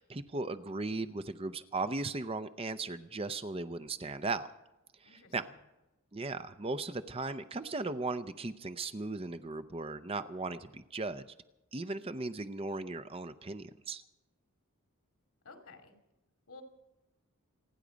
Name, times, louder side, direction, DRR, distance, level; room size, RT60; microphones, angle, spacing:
voice 1, 0.0-4.5 5.3-5.5 6.1-11.2 11.7-14.0, right 3 dB, 25° right, 11 dB, 0.6 m, -37 dB
voice 2, 5.0-5.5 15.4-15.9 16.5-16.6, left 4 dB, 80° left, 5 dB, 2.5 m, -53 dB
28.0 x 9.8 x 5.1 m, 0.97 s
head